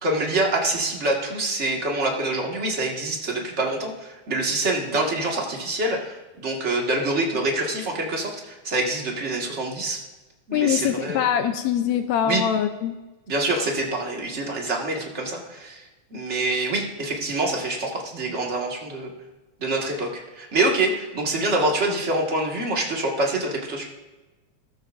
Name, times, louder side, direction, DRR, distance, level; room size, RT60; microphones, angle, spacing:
voice 1, 0.0-10.0 10.5-11.2 12.2-12.4 13.3-19.1 19.6-23.8, right 2 dB, 30° right, 0 dB, 1.5 m, -26 dB
voice 2, 10.5-13.0, left 9 dB, 75° left, 7 dB, 1.8 m, -23 dB
14.0 x 14.0 x 2.6 m, 1.1 s
omnidirectional pair, 3.4 m